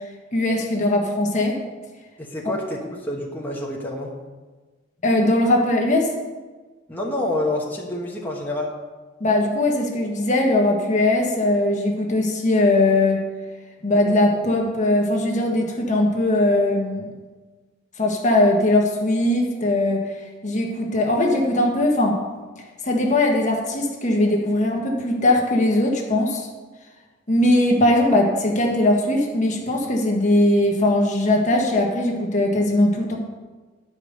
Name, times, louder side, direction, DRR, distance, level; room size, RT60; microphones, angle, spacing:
voice 1, 0.3-1.6 5.0-6.1 9.2-13.2 13.8-17.1 18.0-20.0 20.4-22.2 22.8-26.5 27.3-33.2, left 1 dB, 40° left, 0 dB, 1.3 m, -20 dB
voice 2, 2.2-4.1 6.9-8.7, left 1 dB, 10° left, -3 dB, 1.3 m, -27 dB
10.5 x 5.2 x 6.4 m, 1.3 s
head